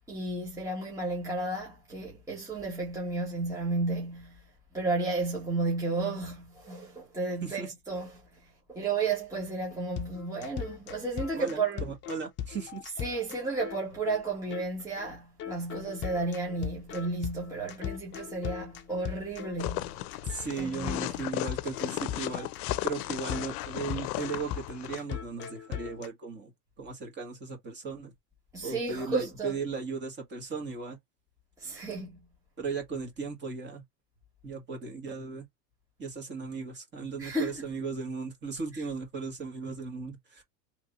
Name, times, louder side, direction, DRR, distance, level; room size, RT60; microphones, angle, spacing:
voice 1, 0.1-4.4 4.7-11.9 13.0-20.0 20.6-21.3 28.5-29.5 31.6-32.2 37.2-37.6 38.7-38.8, right 3 dB, 5° right, 1.1 m, -33 dB
sound 1, 10.0-14.2 14.5-14.6 15.0-15.1 15.4-26.1, left 10 dB, 25° left, 0.6 m, -39 dB
voice 2, 11.3-12.9 20.2-22.5 22.8-26.5 26.8-28.1 28.6-31.0 32.6-33.8 34.4-35.5 36.0-40.4, right 4 dB, 25° right, 1.5 m, -37 dB
sound 2, 19.6-25.0, left 17 dB, 70° left, 0.6 m, -35 dB
3.3 x 2.6 x 4.0 m
supercardioid pair, 140°, 47 cm